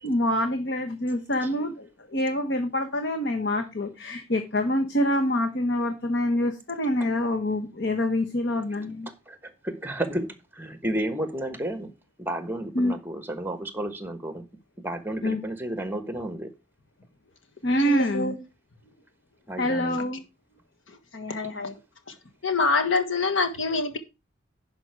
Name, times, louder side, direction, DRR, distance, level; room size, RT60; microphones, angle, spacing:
voice 1, 0.0-9.1 12.7-13.0 15.2-15.4 17.6-18.3 19.6-20.2, left 1 dB, 60° left, 1.1 m, -26 dB
voice 2, 9.3-11.9 12.2-14.5 14.8-16.5 19.5-20.0, right 1 dB, 10° right, 1.1 m, -32 dB
voice 3, 17.8-18.3 21.1-21.7 22.4-24.0, left 3 dB, 75° left, 1.5 m, -25 dB
11.0 x 5.1 x 4.7 m
head